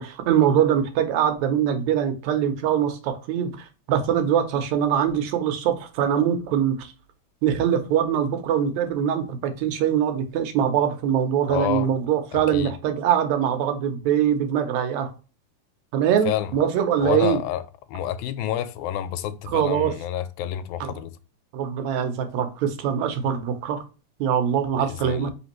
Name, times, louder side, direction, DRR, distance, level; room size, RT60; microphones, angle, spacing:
voice 1, 0.0-6.9 7.4-15.1 15.9-17.4 19.5-20.0 20.8-21.0 21.5-23.8 24.2-25.3, right 9 dB, 75° right, 2.0 m, -23 dB
voice 2, 11.5-11.9 12.5-12.7 16.3-16.5 17.0-17.6 17.9-21.1 25.0-25.3, left 11 dB, 85° left, 2.0 m, -28 dB
4.3 x 3.3 x 2.9 m
omnidirectional pair, 3.4 m